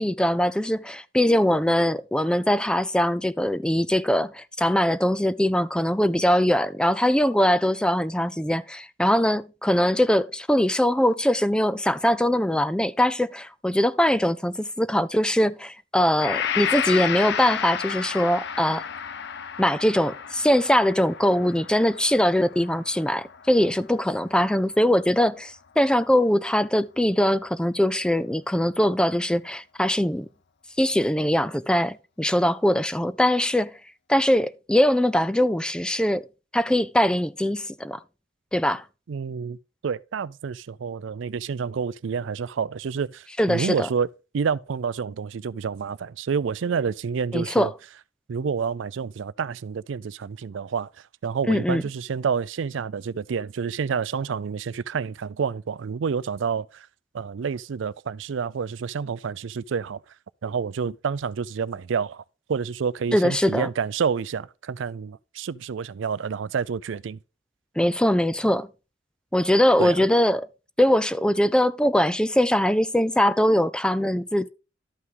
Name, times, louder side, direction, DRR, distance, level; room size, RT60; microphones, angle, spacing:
voice 1, 0.0-18.8 19.6-30.3 30.8-33.7 34.1-36.3 36.5-38.0 38.5-38.8 43.4-43.9 47.3-47.7 51.5-51.8 63.1-63.7 67.8-68.7 69.3-70.5 70.8-74.5, equal, 5° left, 0.3 m, -22 dB
Gong, 16.2-24.2, left 8 dB, 60° left, 0.6 m, -32 dB
voice 2, 39.1-39.6 39.8-44.1 44.3-47.7 48.3-50.9 51.2-56.9 57.1-60.0 60.4-62.2 62.5-67.2 69.8-70.1, right 6 dB, 70° right, 0.4 m, -28 dB
12.5 x 5.7 x 3.8 m
head